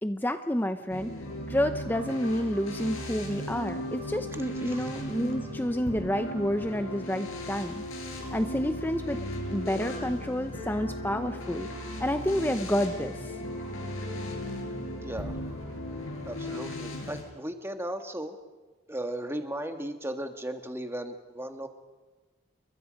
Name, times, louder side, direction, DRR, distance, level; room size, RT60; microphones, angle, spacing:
voice 1, 0.0-1.1 1.5-7.8 8.3-9.2 9.5-11.7 12.0-13.3, equal, 10° left, 8 dB, 0.7 m, -29 dB
sound 1, 0.9-17.2, equal, 85° left, 6.6 m, -37 dB
Piano, 9.5-12.2 12.6-12.7, equal, 70° left, 6.4 m, -49 dB
voice 2, 15.0-15.4 16.2-18.4 18.9-21.7, right 1 dB, 10° right, 6 dB, 1.6 m, -36 dB
29.5 x 22.5 x 5.3 m, 1.3 s
head